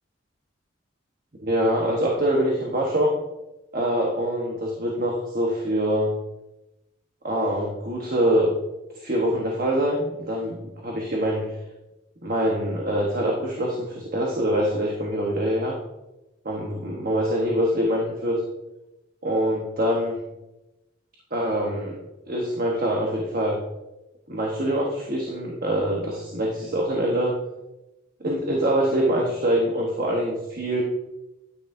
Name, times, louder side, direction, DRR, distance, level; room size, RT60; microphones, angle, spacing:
voice 1, 1.4-3.1 3.7-6.1 7.2-8.5 8.9-10.6 10.8-11.5 12.2-15.7 16.4-18.4 19.2-20.2 21.3-22.0 22.3-23.6 24.3-27.3 28.2-30.8, equal, 45° right, -1 dB, 1.2 m, -24 dB
9.6 x 9.3 x 2.7 m, 0.97 s
head